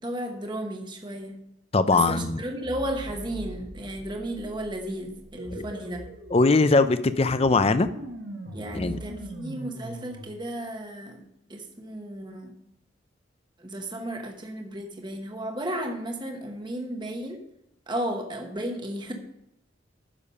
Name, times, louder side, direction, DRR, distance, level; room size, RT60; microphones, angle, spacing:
voice 1, 0.0-1.4 1.9-6.0 8.5-11.2 11.5-12.5 13.6-17.4 17.9-19.1, right 1 dB, 25° right, 3 dB, 1.1 m, -34 dB
voice 2, 1.7-2.4 5.5-5.7 6.3-7.9 8.7-9.0, left 3 dB, 30° left, 12 dB, 0.5 m, -21 dB
sound 1, 2.6-10.3, right 1 dB, 65° right, 1.7 m, -41 dB
10.0 x 6.9 x 5.5 m, 0.82 s
head